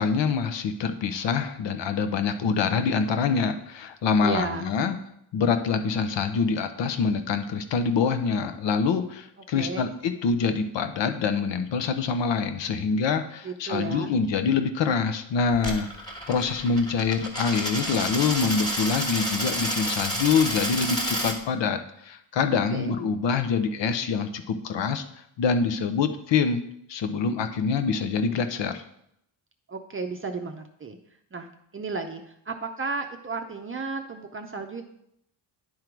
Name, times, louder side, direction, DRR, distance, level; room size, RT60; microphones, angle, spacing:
voice 1, 0.0-5.0 5.3-25.0 25.4-26.6 26.9-28.8, left 5 dB, 65° left, 9 dB, 0.9 m, -25 dB
voice 2, 4.2-4.7 9.6-9.9 13.4-14.1 22.5-23.0 29.7-31.0 31.3-34.8, right 4 dB, 25° right, 4 dB, 0.6 m, -33 dB
Coin (dropping), 15.5-21.4, equal, 10° left, 1.5 m, -30 dB
10.5 x 3.7 x 4.5 m, 0.75 s
cardioid pair, 105°, 46 cm